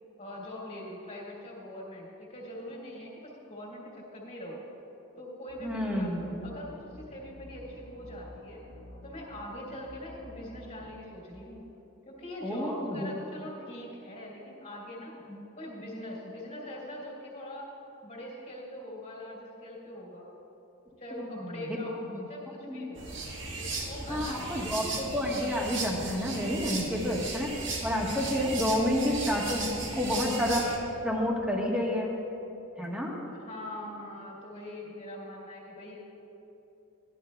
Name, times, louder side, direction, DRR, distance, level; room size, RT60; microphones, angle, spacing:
voice 1, 0.2-4.6 5.2-6.1 6.4-8.6 9.0-11.7 12.0-15.2 15.5-17.7 18.0-20.3 21.0-23.1 23.5-24.7 33.3-36.0, left 1 dB, 35° left, -6 dB, 2.5 m, -42 dB
sound 1, 5.5-10.9, equal, 80° left, 1.2 m, -50 dB
voice 2, 5.6-6.3 12.4-13.1 21.1-21.8 22.1-22.3 22.7-22.9 24.1-27.5 27.8-30.7 31.0-32.1 32.8-33.2, left 1 dB, 5° right, -3 dB, 1.2 m, -30 dB
sound 2, 23.0-30.8, right 3 dB, 60° right, 1.4 m, -36 dB
14.5 x 11.0 x 2.3 m, 3.0 s
head